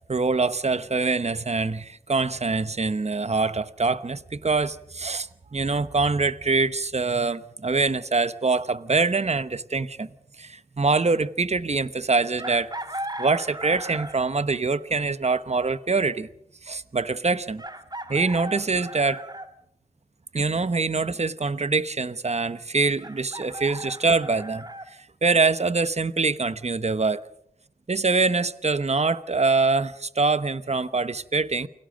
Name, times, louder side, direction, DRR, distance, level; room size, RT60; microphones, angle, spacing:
voice 1, 0.1-10.1 10.4-12.7 13.2-16.3 16.6-17.6 18.1-19.2 20.3-24.7 25.2-27.2 27.9-31.7, right 3 dB, 45° right, 1.0 m, -24 dB
Chicken rooster, 12.4-14.3 16.0-16.1 17.6-19.5 23.0-24.9, right 1 dB, 25° right, 2.2 m, -36 dB
29.0 x 23.0 x 5.2 m
wide cardioid pair, 60°, 15 cm